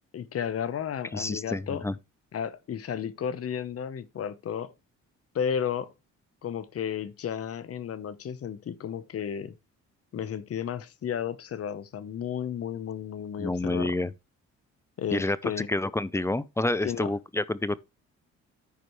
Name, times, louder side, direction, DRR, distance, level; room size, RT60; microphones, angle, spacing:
voice 1, 0.1-1.8 2.3-4.7 5.3-5.9 6.4-9.5 10.1-13.9 15.0-15.7 16.8-17.1, left 8 dB, 50° left, 1.0 m, -33 dB
voice 2, 1.1-1.9 13.4-14.1 15.1-17.8, left 2 dB, 10° left, 0.5 m, -28 dB
14.0 x 5.0 x 3.1 m
cardioid pair, 90°, 30 cm